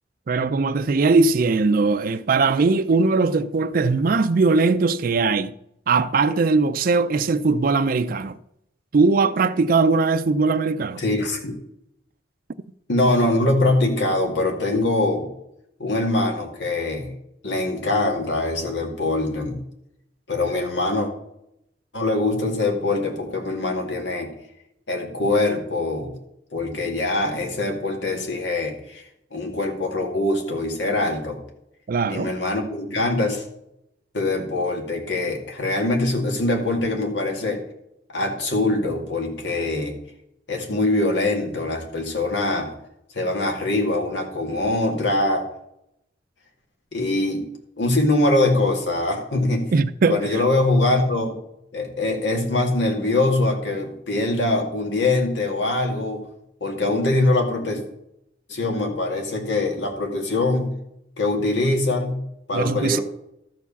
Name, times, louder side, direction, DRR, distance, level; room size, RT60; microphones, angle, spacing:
voice 1, 0.3-5.5 5.9-8.4 8.9-11.0 31.9-32.3 49.7-50.4 62.5-63.0, right 4 dB, 50° right, 0.4 m, -20 dB
voice 2, 11.0-11.5 12.9-15.3 15.8-17.1 17.4-19.6 20.3-21.1 21.9-24.3 24.9-26.1 26.5-29.0 29.3-31.4 32.1-33.5 34.1-37.6 38.1-40.0 40.5-42.7 43.1-45.4 46.9-47.5 47.8-49.7 50.1-51.3 51.7-56.2 56.6-57.8 58.5-60.7 61.2-62.2 62.5-63.0, left 2 dB, 85° left, 2.2 m, -23 dB
13.0 x 4.6 x 7.0 m
head